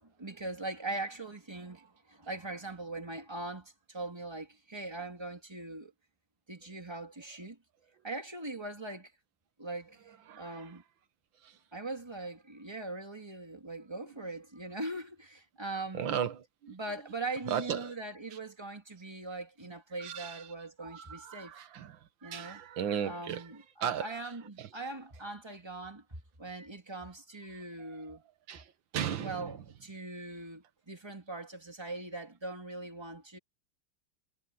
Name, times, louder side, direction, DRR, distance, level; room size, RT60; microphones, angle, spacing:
voice 1, 0.0-5.9 6.5-7.6 8.0-9.1 9.6-10.8 11.7-16.1 16.7-21.5 22.2-22.6 23.0-26.0 26.4-28.2 29.2-33.4, right 2 dB, 15° right, 2.7 m, -41 dB
voice 2, 10.3-10.8 11.4-11.6 15.9-16.7 17.5-17.9 18.3-18.4 20.0-20.5 20.8-23.5 23.8-24.3 24.6-24.7 27.8-27.9 28.5-29.6, right 8 dB, 85° right, 1.9 m, -36 dB
omnidirectional pair, 2.1 m